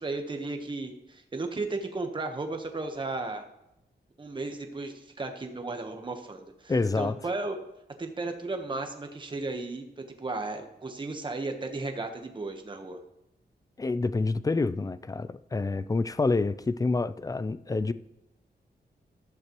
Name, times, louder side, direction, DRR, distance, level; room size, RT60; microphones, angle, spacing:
voice 1, 0.0-3.5 4.2-7.6 8.0-13.0, right 3 dB, 25° right, 1.1 m, -35 dB
voice 2, 6.7-7.2 13.8-17.9, left 3 dB, 20° left, 0.4 m, -27 dB
15.0 x 12.0 x 3.1 m
wide cardioid pair, 165°, 18 cm